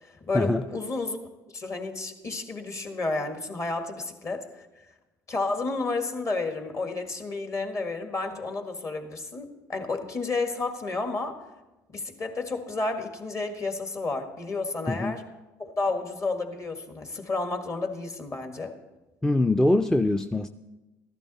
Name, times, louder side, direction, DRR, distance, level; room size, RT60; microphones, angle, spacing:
voice 1, 0.3-1.2 1.5-4.5 5.3-11.4 11.9-15.2 15.6-18.8, left 3 dB, 35° left, 5 dB, 1.7 m, -31 dB
voice 2, 19.2-20.5, left 2 dB, 5° left, 8 dB, 0.4 m, -23 dB
14.0 x 11.5 x 4.1 m, 1.1 s
supercardioid pair, 80°, 8 cm